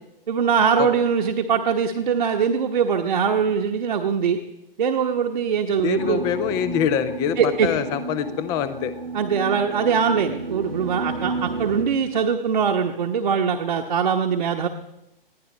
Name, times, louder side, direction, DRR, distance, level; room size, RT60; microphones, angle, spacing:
voice 1, 0.3-4.4 4.8-6.2 7.4-7.7 9.1-14.7, right 6 dB, 55° right, 2 dB, 1.1 m, -22 dB
voice 2, 5.8-8.9, left 9 dB, 15° left, 13 dB, 0.5 m, -25 dB
sound 1, 6.0-11.8, right 3 dB, 80° right, 1.4 m, -32 dB
22.5 x 16.0 x 3.2 m, 0.89 s
figure-of-eight pair, 120°, 29 cm